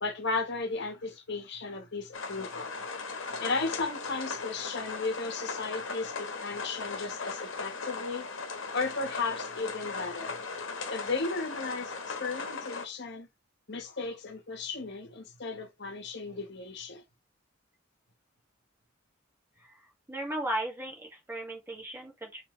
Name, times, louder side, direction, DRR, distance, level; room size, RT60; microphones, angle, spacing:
voice 1, 0.0-2.7 3.4-8.3 8.7-10.4 10.9-13.3 13.7-17.0, left 3 dB, 60° left, 1.3 m, -35 dB
sound 1, 2.1-12.9, left 4 dB, 75° left, 1.2 m, -38 dB
voice 2, 19.6-22.4, right 1 dB, 10° right, 1.8 m, -36 dB
4.7 x 3.5 x 3.2 m
head